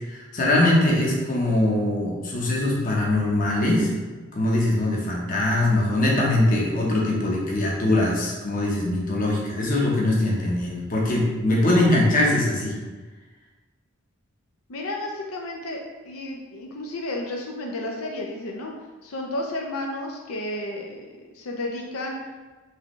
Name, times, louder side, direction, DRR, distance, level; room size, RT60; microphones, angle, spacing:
voice 1, 0.1-3.9 4.3-12.8, left 1 dB, 40° left, -3 dB, 0.9 m, -22 dB
voice 2, 14.7-18.7 19.0-22.2, left 1 dB, 90° left, 0 dB, 0.6 m, -32 dB
4.8 x 3.4 x 3.1 m, 1.3 s
head